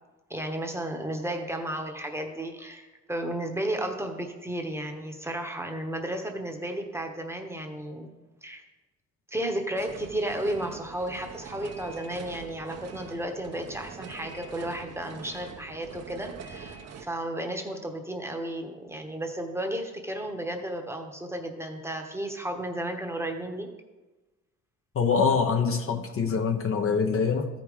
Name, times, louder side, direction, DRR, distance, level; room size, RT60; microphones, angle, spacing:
voice 1, 0.3-8.1 8.4-8.6 9.3-23.7, right 1 dB, 10° right, 3 dB, 1.0 m, -33 dB
sound 1, 9.8-17.1, right 6 dB, 55° right, 0.9 m, -44 dB
voice 2, 24.9-27.5, left 5 dB, 45° left, 5 dB, 0.8 m, -24 dB
13.5 x 5.0 x 3.6 m, 1.2 s
cardioid pair, 90°, 30 cm